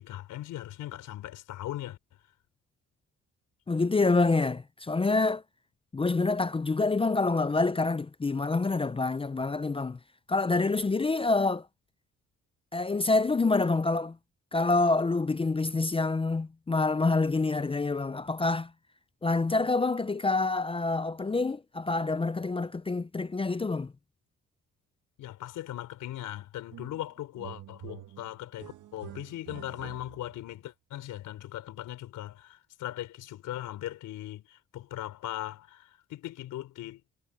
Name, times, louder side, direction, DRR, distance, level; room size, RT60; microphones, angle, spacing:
voice 1, 0.0-2.0 25.2-37.0, left 13 dB, 85° left, 4.2 m, -39 dB
voice 2, 3.7-5.4 5.9-10.0 10.3-11.7 12.7-14.2 14.5-18.7 19.2-23.9, left 3 dB, 20° left, 0.6 m, -27 dB
sound 1, 26.7-27.1 27.4-30.5, right 13 dB, 80° right, 2.2 m, -47 dB
cardioid pair, 90°, 30 cm